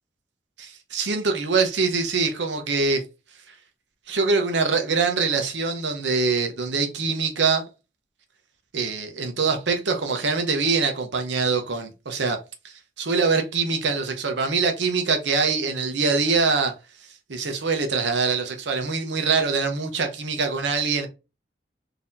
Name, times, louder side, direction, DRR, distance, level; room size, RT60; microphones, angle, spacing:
voice 1, 0.6-3.0 4.1-7.6 8.7-12.4 12.6-16.7 17.3-21.1, right 4 dB, 85° right, 0.8 m, -24 dB
4.0 x 2.8 x 2.6 m
head